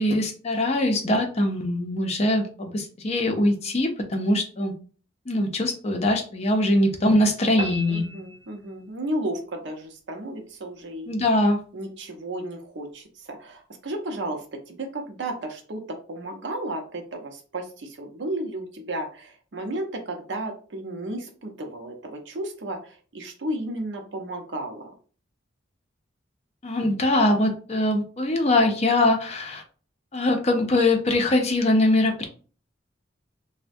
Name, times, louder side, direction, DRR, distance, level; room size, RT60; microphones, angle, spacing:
voice 1, 0.0-4.7 5.3-8.1 11.1-11.6 26.6-29.6 30.1-32.3, left 1 dB, 35° left, 3 dB, 0.5 m, -22 dB
sound 1, 7.6-9.1, equal, 30° right, 0.4 m, -36 dB
voice 2, 7.9-11.2 11.7-15.8 16.1-24.9, right 1 dB, 65° right, 3 dB, 0.7 m, -33 dB
3.3 x 2.1 x 2.6 m, 0.40 s
head